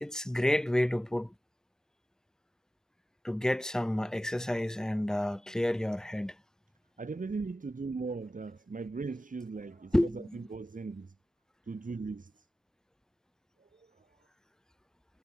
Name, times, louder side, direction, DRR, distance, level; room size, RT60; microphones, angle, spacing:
voice 1, 0.0-1.3 3.2-6.4 9.9-10.4, left 1 dB, ahead, 0.6 m, -30 dB
voice 2, 7.0-11.1 11.7-12.4 13.7-13.8, right 4 dB, 25° right, 3.3 m, -38 dB
cardioid pair, 90°, 30 cm